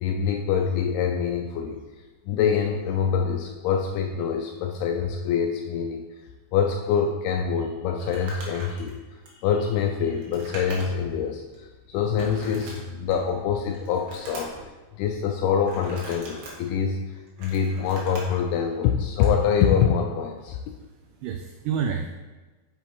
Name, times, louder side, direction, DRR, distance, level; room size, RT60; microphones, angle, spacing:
voice 1, 0.0-1.8 2.3-6.0 6.5-9.0 9.4-14.6 15.0-17.0 17.4-20.6, left 7 dB, 85° left, 3 dB, 2.3 m, -25 dB
Crumpling crinkling, 8.0-11.1 11.5-11.6 12.2-13.3 13.7-14.7 15.6-16.5 17.1-18.4 19.1-19.4, right 1 dB, 70° right, 3.3 m, -41 dB
voice 2, 20.7-22.1, right 7 dB, 90° right, 5 dB, 2.2 m, -30 dB
8.4 x 7.1 x 3.0 m, 1.2 s
omnidirectional pair, 5.0 m